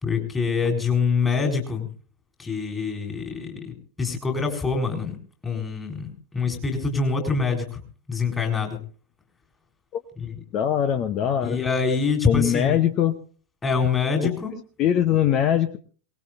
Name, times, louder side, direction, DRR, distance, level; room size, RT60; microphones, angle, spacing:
voice 1, 0.0-1.9 2.4-5.2 5.4-7.8 8.1-8.8 10.2-10.3 11.4-12.8 13.6-14.5, left 5 dB, 15° left, 4 dB, 4.1 m, -25 dB
voice 2, 10.5-11.6 12.2-13.2 14.2-14.4 14.8-15.8, left 10 dB, 35° left, 12 dB, 0.9 m, -22 dB
23.0 x 19.5 x 2.6 m, 0.40 s
figure-of-eight pair, 90°, 0 cm